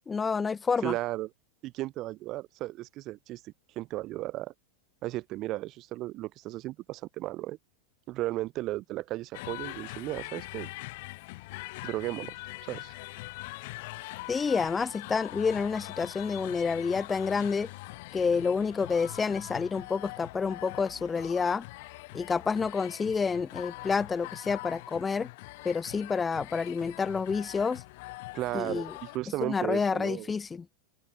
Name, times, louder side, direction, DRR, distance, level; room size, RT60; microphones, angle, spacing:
voice 1, 0.1-0.9 14.3-17.7 18.1-21.6 22.1-25.3 25.6-27.8 28.5-28.9 29.4-30.6, left 5 dB, 15° left, 0.4 m, -29 dB
voice 2, 0.8-1.3 1.6-4.5 5.0-7.6 8.1-10.7 11.8-12.4 12.7-12.9 28.3-30.3, right 17 dB, 35° right, 1.0 m, -35 dB
sound 1, 9.3-29.2, left 22 dB, 50° left, 1.8 m, -43 dB
figure-of-eight pair, 90°, 0 cm